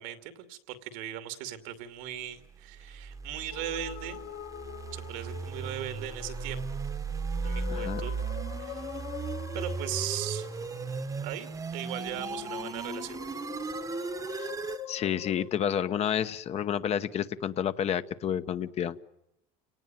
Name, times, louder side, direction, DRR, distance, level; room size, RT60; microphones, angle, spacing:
voice 1, 0.0-4.2 4.9-6.8 7.4-8.1 8.6-8.8 9.5-10.5 11.2-13.2, right 11 dB, 85° right, 8 dB, 2.6 m, -38 dB
sound 1, 2.7-14.8, right 5 dB, 20° right, 1.1 m, -36 dB
sound 2, 3.5-15.6, left 12 dB, 65° left, 1.2 m, -43 dB
voice 2, 7.7-8.0 14.3-14.5 14.9-19.0, left 9 dB, 40° left, 12 dB, 1.0 m, -30 dB
29.5 x 18.5 x 9.2 m, 0.86 s
cardioid pair, 130°, 16 cm